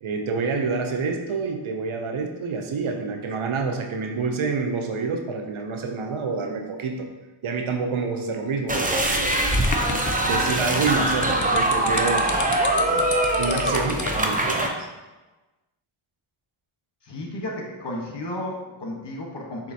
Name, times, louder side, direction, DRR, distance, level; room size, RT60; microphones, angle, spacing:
voice 1, 0.0-7.1 7.4-9.4 9.9-12.3 12.8-13.1 13.4-14.9, right 4 dB, 75° right, 4 dB, 0.7 m, -28 dB
sound 1, 8.7-14.7, right 1 dB, 15° right, 0.6 m, -23 dB
sound 2, 9.2-14.2, left 4 dB, 40° left, 0.6 m, -32 dB
voice 2, 17.1-19.7, left 1 dB, 55° left, -1 dB, 1.3 m, -33 dB
6.3 x 2.8 x 2.8 m, 1.1 s
cardioid pair, 40°, 49 cm